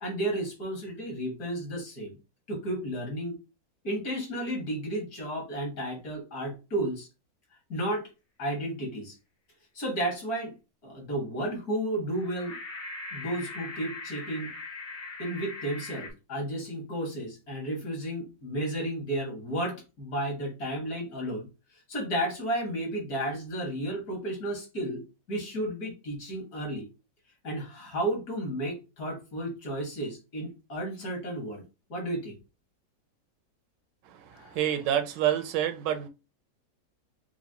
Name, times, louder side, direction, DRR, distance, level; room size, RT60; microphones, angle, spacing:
voice 1, 0.0-2.1 2.5-3.4 3.8-7.1 7.7-8.1 8.4-9.1 9.7-10.5 10.8-12.6 13.1-14.5 15.2-21.5 21.9-26.9 27.4-31.6 31.9-32.4 34.3-34.6, right 1 dB, 55° left, 2.1 m, -33 dB
sound 1, 12.1-16.1, left 3 dB, 85° left, 2.0 m, -40 dB
voice 2, 34.5-36.1, right 11 dB, 80° right, 1.3 m, -27 dB
5.8 x 2.4 x 2.9 m
omnidirectional pair, 1.9 m